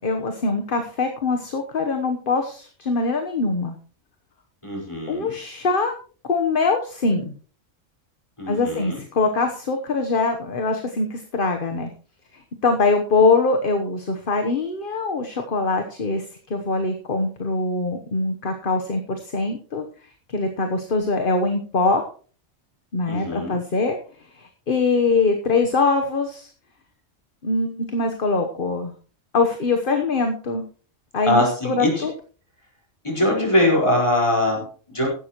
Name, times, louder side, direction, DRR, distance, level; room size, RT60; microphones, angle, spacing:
voice 1, 0.0-3.8 5.1-5.9 6.3-7.3 8.5-11.9 12.6-16.2 16.5-19.8 20.3-22.0 22.9-24.0 24.3-26.5 27.4-28.9 29.3-30.6 31.1-32.1, left 3 dB, 45° left, 5 dB, 1.3 m, -23 dB
voice 2, 4.6-5.3 8.4-9.0 23.1-23.6 31.2-32.0 33.0-35.1, left 1 dB, 25° left, -1 dB, 5.1 m, -22 dB
15.5 x 12.0 x 3.1 m, 0.41 s
omnidirectional pair, 1.3 m